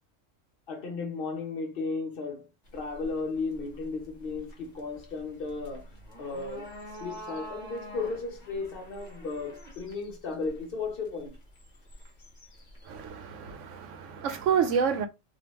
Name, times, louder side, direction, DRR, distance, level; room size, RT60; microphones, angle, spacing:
voice 1, 0.7-5.9 6.2-6.7 7.0-11.4, left 4 dB, 50° left, 0.9 m, -35 dB
sound 1, 2.7-13.1, equal, 35° left, 1.1 m, -47 dB
voice 2, 12.9-15.1, right 7 dB, 75° right, 1.0 m, -28 dB
3.4 x 2.6 x 2.9 m
omnidirectional pair, 1.3 m